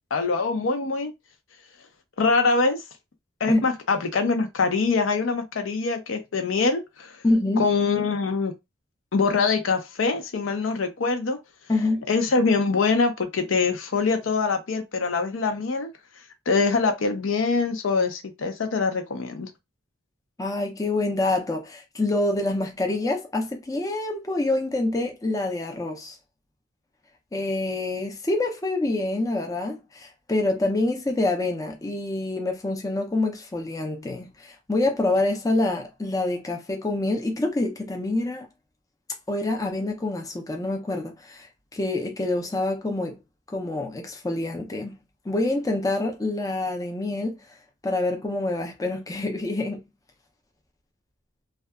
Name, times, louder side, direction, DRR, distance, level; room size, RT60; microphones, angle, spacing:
voice 1, 0.1-1.1 2.2-2.8 3.4-7.2 7.6-8.5 9.1-11.4 12.1-15.9 16.5-19.5, left 4 dB, 70° left, 0.6 m, -24 dB
voice 2, 7.2-7.7 11.7-12.0 20.4-26.2 27.3-38.5 39.3-43.2 43.5-44.9 45.3-47.4 47.8-49.8, left 2 dB, 20° left, 0.5 m, -26 dB
2.6 x 2.3 x 2.3 m
head